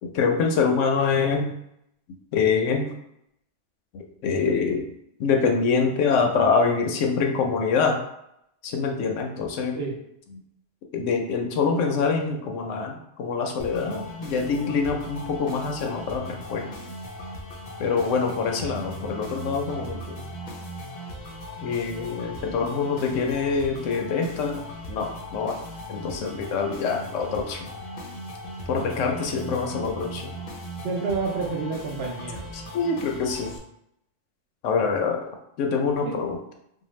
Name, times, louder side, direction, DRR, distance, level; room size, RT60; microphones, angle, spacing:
voice 1, 0.0-1.5 2.3-2.9 3.9-4.9 5.2-8.0 8.6-9.8 10.9-16.6 17.8-20.2 21.6-24.6 24.9-25.6 25.9-27.7 28.7-30.3 32.5-33.5 34.6-35.3 35.6-36.4, left 5 dB, 80° left, 3 dB, 0.9 m, -25 dB
sound 1, 13.6-33.6, equal, 55° left, 0.5 m, -38 dB
voice 2, 30.8-32.4 35.0-35.1 36.0-36.2, right 4 dB, 65° right, -1 dB, 0.8 m, -29 dB
2.6 x 2.2 x 3.0 m, 0.79 s
omnidirectional pair, 1.3 m